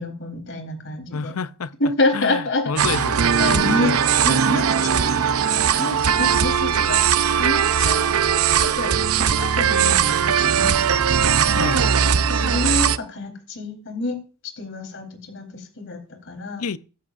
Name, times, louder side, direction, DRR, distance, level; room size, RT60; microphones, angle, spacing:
voice 1, 0.0-1.3 1.8-3.0 3.4-5.3 5.7-7.0 7.4-8.1 8.6-10.8 11.5-11.6 12.3-14.2 14.6-16.6, left 2 dB, 60° left, 4.0 m, -28 dB
voice 2, 1.1-1.7 2.1-3.3 11.5-11.8 16.6-16.8, left 5 dB, 85° left, 0.7 m, -29 dB
sound 1, 2.8-13.0, right 7 dB, 85° right, 0.7 m, -19 dB
16.0 x 15.0 x 2.6 m
head